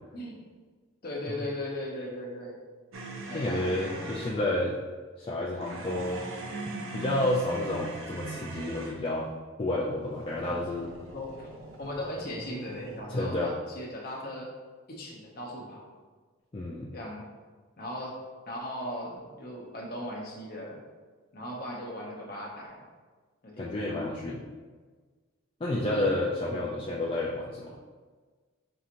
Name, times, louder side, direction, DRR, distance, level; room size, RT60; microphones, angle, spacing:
voice 1, 1.0-2.6 3.3-4.1 10.4-10.6 11.1-11.5 11.8-14.5 14.9-15.8 16.9-17.3 17.8-18.2 18.5-20.8 21.3-22.9 23.4-23.9 25.8-26.1 26.5-26.7, left 1 dB, 45° left, -1 dB, 0.7 m, -38 dB
sound 1, 2.9-4.4 5.6-9.1 10.0-13.0, right 2 dB, 75° right, 0.6 m, -41 dB
voice 2, 3.3-4.7 5.2-6.2 6.9-9.3 9.6-10.9 13.1-13.5 16.5-16.9 23.6-24.4 25.6-27.7, left 1 dB, 25° left, -6 dB, 0.3 m, -30 dB
5.5 x 2.8 x 2.5 m, 1.4 s
head